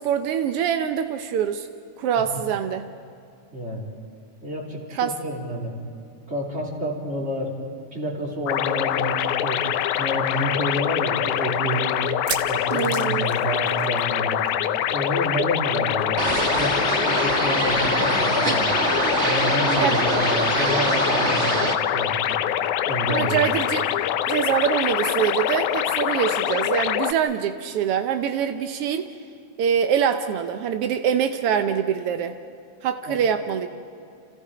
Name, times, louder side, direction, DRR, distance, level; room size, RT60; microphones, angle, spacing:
voice 1, 0.0-1.7 2.0-2.9 4.9-5.2 12.7-13.3 19.8-20.0 23.1-23.9 24.3-29.1 29.6-32.3 32.8-33.7, right 8 dB, 80° right, 8 dB, 1.3 m, -24 dB
voice 2, 3.5-3.9 4.4-5.7 6.3-7.5 7.9-9.6 10.0-12.1 12.4-14.4 14.9-18.7 19.2-21.6 21.9-22.4 22.9-23.4 33.1-33.2, equal, 20° right, -1 dB, 3.6 m, -29 dB
sound 1, 8.5-27.1, left 11 dB, 75° left, 2.1 m, -24 dB
sound 2, 9.4-9.5 9.8-9.9 10.5-10.6 12.0-14.2 14.5-14.7 14.9-15.0 16.5-16.6, right 7 dB, 60° right, 1.4 m, -35 dB
sound 3, 16.2-21.7, right 3 dB, 35° right, 1.1 m, -24 dB
30.0 x 28.0 x 5.0 m, 2.5 s
omnidirectional pair, 3.6 m